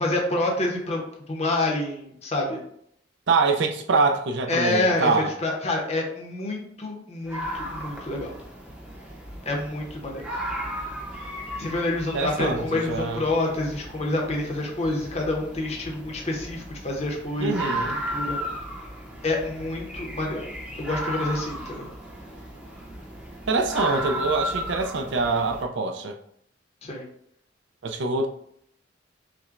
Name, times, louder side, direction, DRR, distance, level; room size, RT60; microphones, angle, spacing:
voice 1, 0.0-2.6 4.5-5.1 5.4-8.3 9.5-10.2 11.6-18.4 19.2-20.4 20.8-21.9 26.8-27.1, left 2 dB, 35° left, 0.8 m, -27 dB
voice 2, 3.3-5.3 12.1-13.3 17.4-18.0 23.5-26.2 27.8-28.3, right 3 dB, 65° right, 0.5 m, -24 dB
sound 1, 7.3-25.6, right 1 dB, 5° right, 0.6 m, -35 dB
5.8 x 2.1 x 2.5 m
head